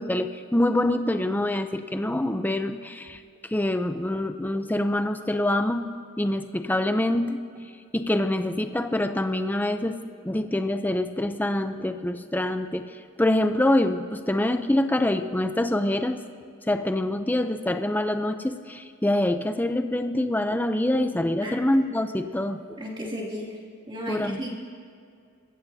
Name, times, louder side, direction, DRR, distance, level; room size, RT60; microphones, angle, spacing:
voice 1, 0.0-3.2 3.5-5.9 6.2-7.4 7.9-10.0 10.2-12.8 13.2-16.2 16.7-22.6 24.1-24.4, left 1 dB, 10° left, 8 dB, 0.5 m, -25 dB
voice 2, 22.8-23.6 23.9-24.6, equal, 25° right, -3 dB, 2.5 m, -34 dB
25.5 x 14.5 x 2.7 m, 2.3 s
head